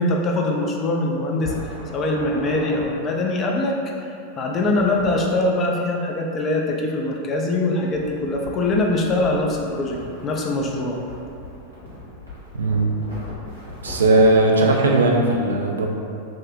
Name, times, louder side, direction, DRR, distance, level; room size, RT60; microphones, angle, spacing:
voice 1, 0.0-11.0, left 2 dB, 30° left, 0 dB, 0.4 m, -23 dB
sound 1, 1.4-2.9 4.6-5.2 7.9-14.3, left 1 dB, 90° right, 0.9 m, -38 dB
voice 2, 12.5-12.9 13.8-15.9, right 2 dB, 70° right, 0 dB, 0.3 m, -17 dB
3.5 x 2.1 x 2.5 m, 2.5 s
figure-of-eight pair, 90°, 0 cm